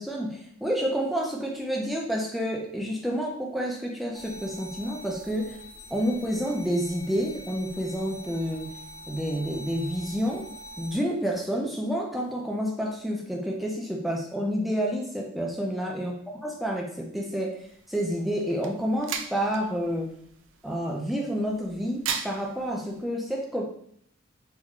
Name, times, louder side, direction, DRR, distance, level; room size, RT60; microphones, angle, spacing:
voice 1, 0.0-5.6 5.9-8.7 9.1-10.4 10.8-16.1 16.4-17.6 17.9-20.2 20.6-23.6, equal, ahead, -1 dB, 0.5 m, -29 dB
sound 1, 4.1-10.9, equal, 15° left, 0.9 m, -44 dB
sound 2, 17.6-23.0, right 7 dB, 60° right, 0.4 m, -39 dB
3.6 x 2.3 x 3.2 m, 0.68 s
head